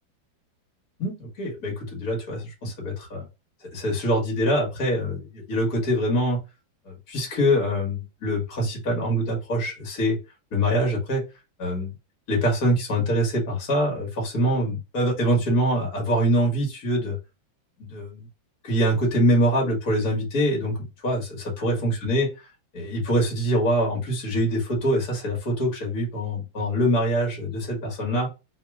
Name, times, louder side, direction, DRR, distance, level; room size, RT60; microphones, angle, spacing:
voice 1, 1.0-3.3 3.7-6.4 6.9-10.2 10.5-11.2 11.6-11.9 12.3-17.2 17.8-18.2 18.6-20.8 21.0-22.3 22.7-28.3, equal, 50° left, -1 dB, 2.0 m, -24 dB
3.9 x 2.9 x 2.4 m, 0.27 s
omnidirectional pair, 2.2 m